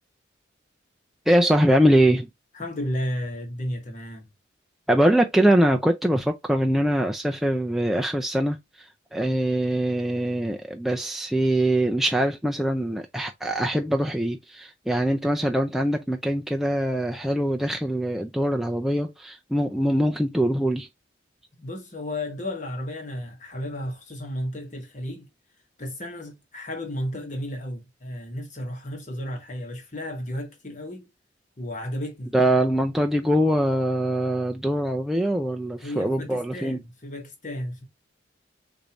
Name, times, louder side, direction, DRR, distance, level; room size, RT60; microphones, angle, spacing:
voice 1, 1.3-2.3 4.9-20.9 32.3-36.8, right 1 dB, ahead, 0.4 m, -23 dB
voice 2, 2.5-4.3 21.5-25.3 25.8-31.1 31.6-32.3 35.8-37.8, left 1 dB, 40° left, 1.4 m, -33 dB
6.5 x 2.7 x 2.9 m
head